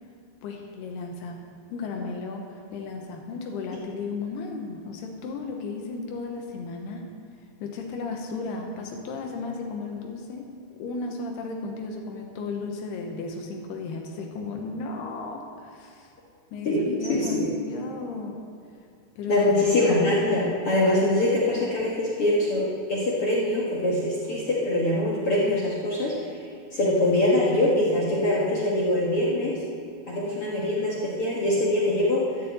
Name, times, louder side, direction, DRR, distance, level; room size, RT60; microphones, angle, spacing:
voice 1, 0.4-1.4 1.7-7.1 7.6-10.5 10.7-16.1 16.5-18.4 19.2-19.5, left 4 dB, 80° left, 2 dB, 3.0 m, -34 dB
voice 2, 16.6-17.5 19.3-26.2 26.7-29.6 30.1-32.3, left 1 dB, 60° left, -5 dB, 1.5 m, -23 dB
13.0 x 7.0 x 8.1 m, 2.3 s
omnidirectional pair, 4.7 m